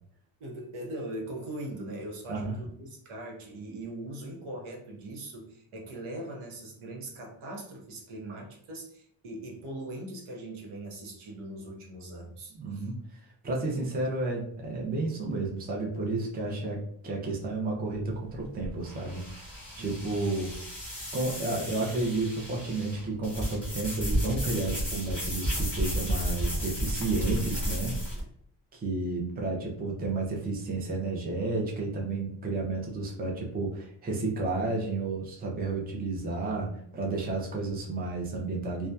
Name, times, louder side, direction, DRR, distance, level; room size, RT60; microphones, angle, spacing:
voice 1, 0.4-12.9 19.8-20.3, right 1 dB, 80° right, -1 dB, 0.8 m, -41 dB
voice 2, 12.5-13.0 13.4-19.5 19.8-20.5 21.1-27.9 28.7-38.9, right 3 dB, 20° right, -1 dB, 0.5 m, -31 dB
sound 1, 17.8-28.2, equal, 5° left, 1.1 m, -33 dB
2.6 x 2.2 x 2.2 m, 0.67 s
wide cardioid pair, 115°, 49 cm